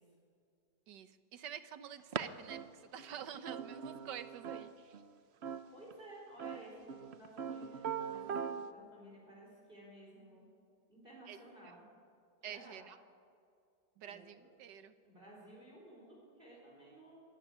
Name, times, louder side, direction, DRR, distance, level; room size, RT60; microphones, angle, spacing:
voice 1, 0.9-5.0 11.3-11.4 11.6-11.7 12.4-13.0 14.0-14.9, right 9 dB, 70° right, 11 dB, 1.6 m, -48 dB
sound 1, 2.1-2.2 2.5-5.1 5.4-5.9 6.4-8.7, right 7 dB, 55° right, 0.7 m, -41 dB
voice 2, 5.7-10.4 10.9-11.8 12.4-12.9 14.0-14.5 15.0-17.2, right 1 dB, 30° right, -4 dB, 4.8 m, -55 dB
24.5 x 13.5 x 9.9 m, 2.4 s
omnidirectional pair, 2.0 m